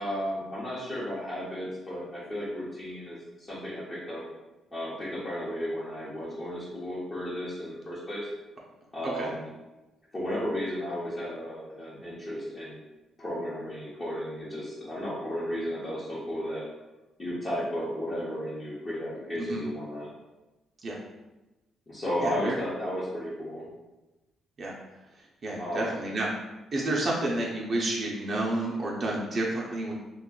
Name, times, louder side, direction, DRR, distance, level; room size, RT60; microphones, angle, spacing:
voice 1, 0.0-4.2 4.7-8.3 8.9-9.5 10.1-12.8 13.2-16.6 17.2-20.1 21.9-23.7 25.6-26.0, equal, 25° left, -9 dB, 0.9 m, -34 dB
voice 2, 22.2-22.6 24.6-24.7 25.1-26.3 26.7-29.9, right 1 dB, 45° right, -3 dB, 0.5 m, -30 dB
2.4 x 2.3 x 3.7 m, 1.0 s
cardioid pair, 90°, 0 cm